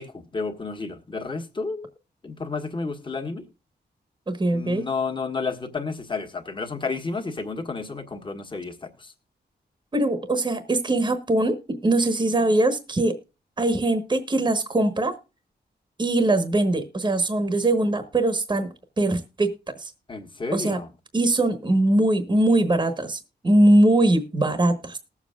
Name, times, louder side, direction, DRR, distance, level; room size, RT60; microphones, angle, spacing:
voice 1, 0.0-1.9 2.2-3.4 4.5-9.1 20.1-20.9, left 4 dB, 25° left, 1.5 m, -31 dB
voice 2, 4.3-4.8 9.9-13.2 13.6-15.1 16.0-19.5 19.8-19.9 20.5-20.8 21.1-25.0, right 1 dB, 25° right, 1.2 m, -21 dB
20.0 x 7.3 x 2.3 m
wide cardioid pair, 115°, 18 cm